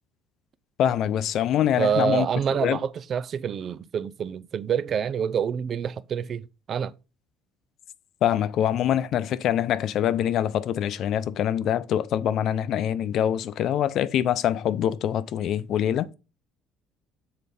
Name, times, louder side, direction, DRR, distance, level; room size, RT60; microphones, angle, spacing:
voice 1, 0.8-2.3 2.6-2.8 8.2-16.1, left 10 dB, 50° left, 0.5 m, -24 dB
voice 2, 1.8-6.4 6.7-6.9, right 7 dB, 40° right, 0.4 m, -27 dB
7.7 x 4.1 x 5.3 m
cardioid pair, 145°, 0 cm